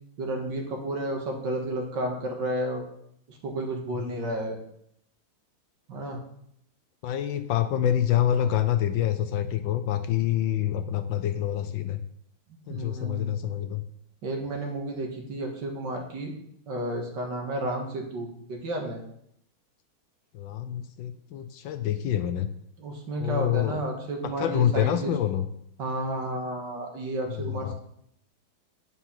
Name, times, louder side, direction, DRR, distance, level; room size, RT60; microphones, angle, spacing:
voice 1, 0.2-2.8 3.3-4.6 5.9-6.2 12.7-13.3 14.2-16.3 16.7-19.0 22.8-25.1 25.8-27.7, right 1 dB, 60° right, 2 dB, 2.0 m, -32 dB
voice 2, 7.0-12.0 12.7-13.8 20.3-22.5 23.2-23.8 24.2-25.5 27.3-27.7, left 10 dB, 75° left, 10 dB, 1.3 m, -27 dB
9.7 x 5.8 x 5.8 m, 0.73 s
omnidirectional pair, 2.3 m